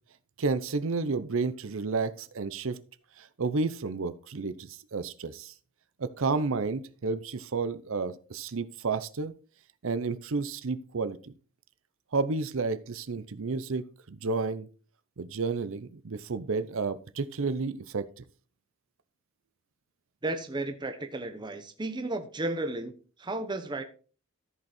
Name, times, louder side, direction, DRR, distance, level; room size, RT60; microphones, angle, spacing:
voice 1, 0.4-2.8 3.2-5.5 6.0-9.3 9.8-11.3 12.1-14.7 15.2-18.1, right 4 dB, 65° right, 13 dB, 0.6 m, -31 dB
voice 2, 20.2-22.9 23.2-23.8, right 2 dB, 20° right, 7 dB, 0.8 m, -33 dB
14.0 x 5.4 x 4.2 m, 0.38 s
head